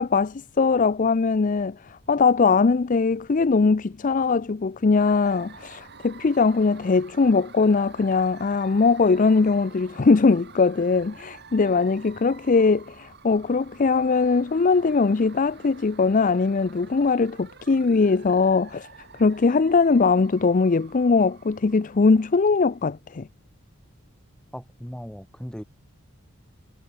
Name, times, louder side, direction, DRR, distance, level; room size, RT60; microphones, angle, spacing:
voice 1, 0.0-18.9 19.2-23.3, left 4 dB, 35° left, 0.4 m, -21 dB
sound 1, 4.9-22.9, right 5 dB, 50° right, 5.8 m, -49 dB
voice 2, 24.5-25.6, equal, 5° left, 3.3 m, -37 dB
head